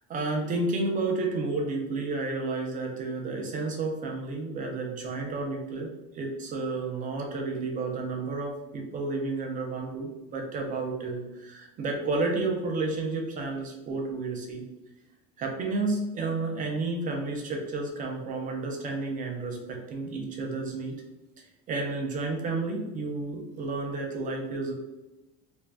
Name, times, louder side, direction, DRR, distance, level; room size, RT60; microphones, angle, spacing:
voice 1, 0.1-14.6 15.4-21.0 21.7-24.7, right 3 dB, 25° right, 1 dB, 0.4 m, -31 dB
2.5 x 2.1 x 3.2 m, 1.0 s
cardioid pair, 165°, 31 cm